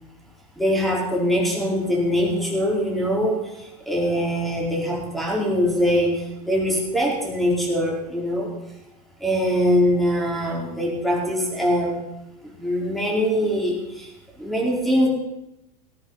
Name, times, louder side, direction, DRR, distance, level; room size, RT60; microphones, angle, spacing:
voice 1, 0.6-3.4 3.9-8.5 9.2-11.9 12.5-14.1 14.4-15.1, equal, ahead, -2 dB, 4.9 m, -22 dB
18.0 x 10.5 x 5.8 m, 0.93 s
supercardioid pair, 125°, 20 cm